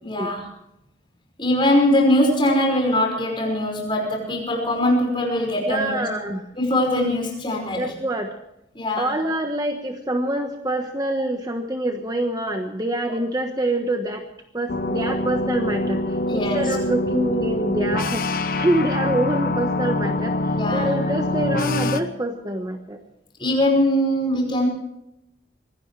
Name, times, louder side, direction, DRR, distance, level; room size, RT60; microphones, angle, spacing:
voice 1, 0.0-0.5 1.4-6.1 6.6-7.9 8.7-9.2 16.3-16.8 20.5-20.9 23.4-24.7, left 1 dB, 25° left, 1 dB, 5.3 m, -21 dB
voice 2, 5.7-6.4 7.8-8.3 9.0-14.2 14.5-16.0 16.3-23.0, right 1 dB, 20° right, 4 dB, 1.2 m, -26 dB
sound 1, 14.7-22.0, left 2 dB, 50° left, 1.0 m, -24 dB
24.5 x 17.5 x 3.3 m, 0.84 s
head